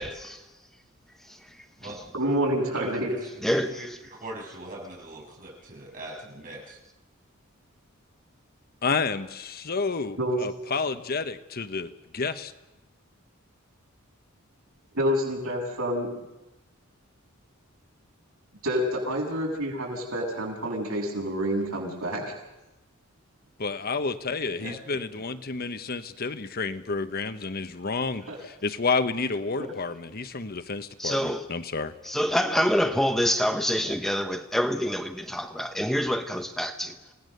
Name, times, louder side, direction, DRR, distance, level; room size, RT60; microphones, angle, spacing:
voice 1, 0.0-0.3 1.3-1.4 1.8-1.9 2.8-2.9 3.4-3.9 31.0-31.5 32.0-37.0, equal, ahead, 0.9 m, -26 dB
voice 2, 2.1-3.1 10.2-10.5 14.9-16.1 18.6-22.2 28.3-28.4, equal, 90° right, 7.2 m, -28 dB
voice 3, 2.7-6.8 24.6-25.0, right 2 dB, 40° right, 7.3 m, -41 dB
voice 4, 8.8-12.5 23.6-28.3 28.6-31.9, left 4 dB, 45° left, 1.1 m, -30 dB
28.0 x 18.0 x 6.7 m
head